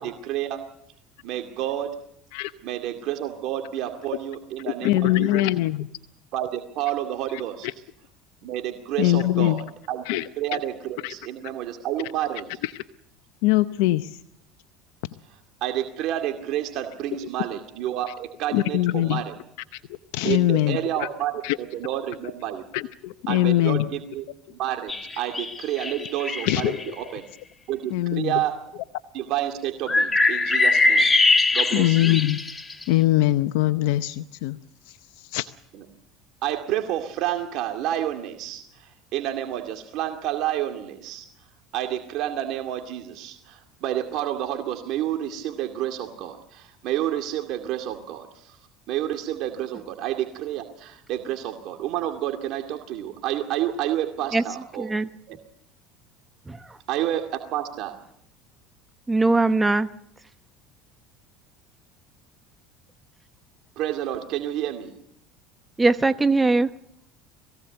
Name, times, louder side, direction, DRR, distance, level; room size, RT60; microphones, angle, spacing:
voice 1, 0.0-0.6 1.2-1.9 2.6-5.4 6.3-7.7 8.4-10.0 10.4-12.5 15.6-19.3 20.2-21.3 21.6-22.6 23.3-24.2 24.6-27.2 27.7-28.6 29.1-31.1 31.5-32.2 35.7-35.9 36.4-41.3 41.7-48.6 48.9-54.9 55.3-55.4 56.9-58.0 63.8-65.0, right 12 dB, 60° right, 2.3 m, -29 dB
voice 2, 4.8-5.9 9.0-9.6 10.1-10.6 11.0-11.1 12.6-12.7 13.4-14.2 18.5-19.2 19.7-19.8 20.1-21.1 21.4-21.6 22.7-23.9 26.4-26.9 27.9-28.4 31.7-32.4 32.9-34.6 34.9-35.5, left 16 dB, 75° left, 0.7 m, -22 dB
sound 1, 24.9-26.8 29.9-32.8, left 3 dB, 20° left, 1.9 m, -22 dB
voice 3, 54.8-55.1 56.5-56.8 59.1-59.9 65.8-66.7, right 3 dB, 15° right, 0.9 m, -21 dB
21.5 x 16.5 x 8.0 m
hypercardioid pair, 85°, 0 cm